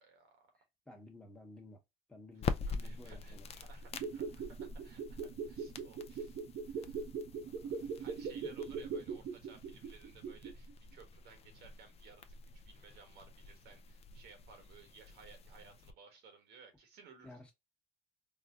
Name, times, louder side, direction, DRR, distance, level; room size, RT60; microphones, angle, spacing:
voice 1, 0.0-0.5 2.8-6.4 6.6-7.1 7.8-17.5, right 5 dB, 85° right, 1.2 m, -59 dB
voice 2, 0.6-1.8 2.1-3.6 4.7-4.8 17.2-17.5, left 2 dB, 5° left, 1.0 m, -55 dB
sound 1, 2.3-15.9, left 5 dB, 35° left, 0.4 m, -46 dB
sound 2, 3.8-10.7 11.0-11.1, right 5 dB, 60° right, 0.6 m, -41 dB
4.0 x 2.0 x 2.3 m
cardioid pair, 110°, 17 cm